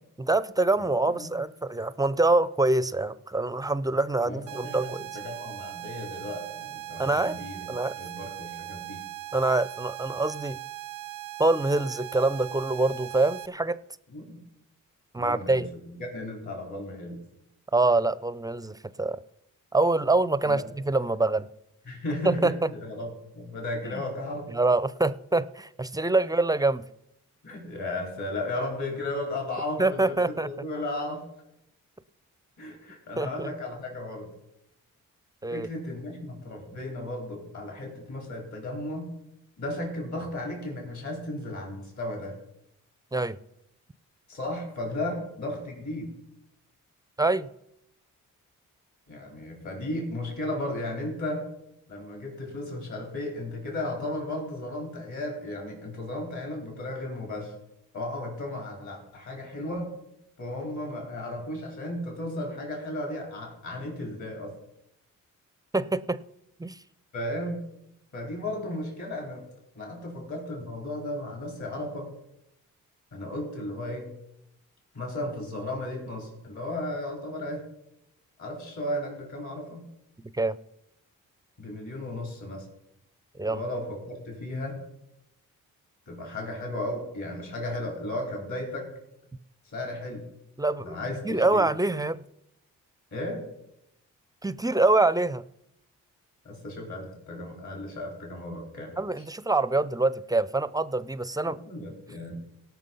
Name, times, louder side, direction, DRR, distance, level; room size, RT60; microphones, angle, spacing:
voice 1, 0.2-5.1 7.0-8.0 9.3-10.6 11.4-13.8 15.1-15.7 17.7-19.2 19.7-21.5 22.2-22.7 23.8-24.0 24.5-26.8 29.8-30.5 33.2-33.5 35.4-35.7 43.1-43.4 47.2-47.5 65.7-66.2 66.6-66.8 80.3-80.6 83.4-83.6 90.6-91.0 91.2-92.2 94.4-95.4 99.0-101.6, right 2 dB, 10° right, 0.5 m, -25 dB
voice 2, 0.8-1.3 4.2-4.9 5.1-7.7 8.0-9.0 14.1-14.4 15.2-17.2 20.4-20.7 21.9-24.5 27.4-31.2 32.6-34.3 35.5-39.1 39.6-42.4 44.3-46.1 49.1-51.5 51.9-57.5 57.9-59.9 60.4-64.6 67.1-67.6 68.1-69.5 69.7-72.1 73.1-74.1 74.9-77.7 78.4-79.8 81.6-82.7 83.5-84.8 86.1-88.9 89.6-90.3 90.8-91.7 93.1-93.4 96.4-98.9 101.4-102.4, left 1 dB, 55° left, 4.6 m, -35 dB
sound 1, 4.5-13.5, right 16 dB, 70° right, 0.5 m, -40 dB
18.0 x 6.0 x 5.5 m
supercardioid pair, 60°, 34 cm